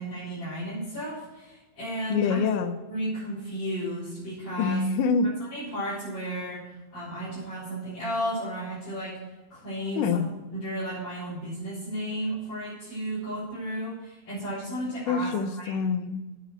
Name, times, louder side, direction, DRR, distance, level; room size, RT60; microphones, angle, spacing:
voice 1, 0.0-2.4 2.9-4.8 5.5-9.2 9.5-10.2 10.5-15.6, equal, 30° left, -13 dB, 4.3 m, -33 dB
voice 2, 2.1-2.8 4.6-5.3 10.0-10.3 15.1-16.3, left 5 dB, 75° left, 8 dB, 2.2 m, -25 dB
8.1 x 7.4 x 6.3 m, 1.1 s
omnidirectional pair, 4.0 m